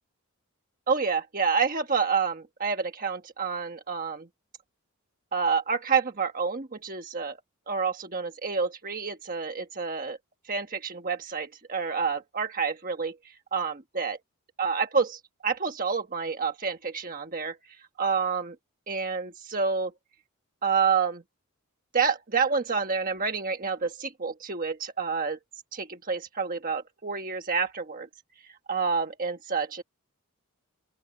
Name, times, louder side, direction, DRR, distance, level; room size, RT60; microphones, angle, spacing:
voice 1, 0.9-4.3 5.3-7.4 7.7-10.2 10.5-14.2 14.6-17.6 18.0-18.5 18.9-19.9 20.6-21.2 21.9-25.4 25.7-28.1 28.7-29.8, right 5 dB, 40° right, 1.3 m, -28 dB
open air
head